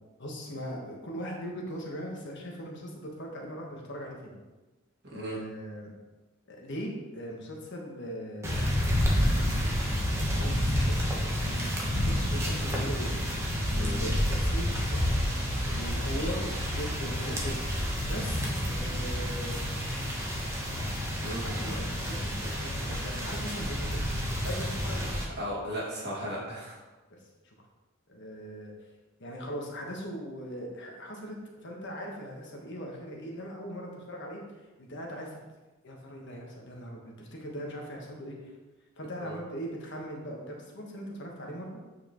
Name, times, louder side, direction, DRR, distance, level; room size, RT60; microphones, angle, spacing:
voice 1, 0.2-4.3 5.1-5.9 6.5-8.5 8.8-9.7 10.3-11.0 11.4-13.2 13.7-15.2 15.7-17.6 18.1-19.6 21.4-24.0 24.4-25.2 27.1-27.5 28.1-28.7 29.2-31.4 31.6-34.4 34.8-35.4 35.8-38.5 39.0-41.7, equal, 60° left, -1 dB, 1.3 m, -40 dB
sound 1, 8.4-25.2, equal, 15° right, 1.1 m, -29 dB
voice 2, 25.4-26.8 39.2-39.4, equal, 55° right, -5 dB, 2.2 m, -36 dB
8.4 x 4.6 x 3.0 m, 1.2 s
head